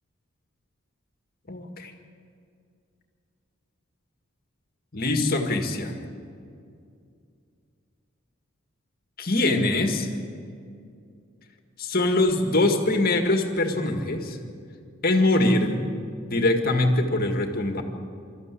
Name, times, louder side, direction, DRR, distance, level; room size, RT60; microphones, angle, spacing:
voice 1, 1.5-1.9 4.9-6.1 9.2-10.2 11.8-14.4 15.0-15.8 16.3-17.8, left 2 dB, 45° left, 4 dB, 1.9 m, -23 dB
24.5 x 13.5 x 8.4 m, 2.4 s
head